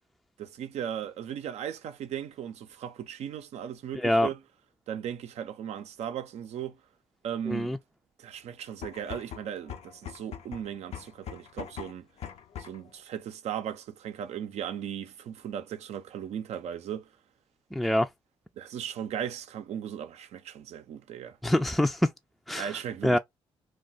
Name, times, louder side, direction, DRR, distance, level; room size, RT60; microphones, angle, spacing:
voice 1, 0.4-4.4 4.9-6.8 7.2-7.7 8.2-12.1 12.6-17.1 18.6-21.4 22.6-23.2, right 9 dB, 70° right, 0.6 m, -37 dB
voice 2, 3.9-4.3 7.5-7.8 17.7-18.1 21.4-22.1 22.5-22.7 23.0-23.2, left 1 dB, ahead, 0.4 m, -25 dB
sound 1, 8.7-12.9, left 9 dB, 70° left, 0.7 m, -42 dB
2.3 x 2.3 x 3.9 m
supercardioid pair, 60°, 11 cm